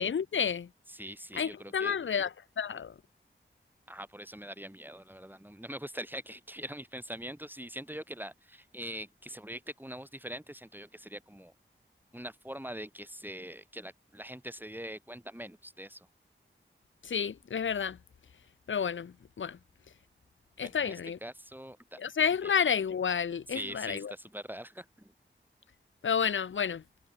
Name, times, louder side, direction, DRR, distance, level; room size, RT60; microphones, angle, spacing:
voice 1, 0.0-0.7 1.3-2.3 2.6-2.9 17.0-18.0 18.7-19.6 20.6-21.2 22.0-24.1 26.0-26.8, left 7 dB, 70° left, 0.6 m, -30 dB
voice 2, 0.9-2.0 3.9-11.5 12.1-16.1 20.6-22.1 22.4-22.5 23.5-25.1, equal, 10° right, 6.1 m, -43 dB
cardioid pair, 45°, 21 cm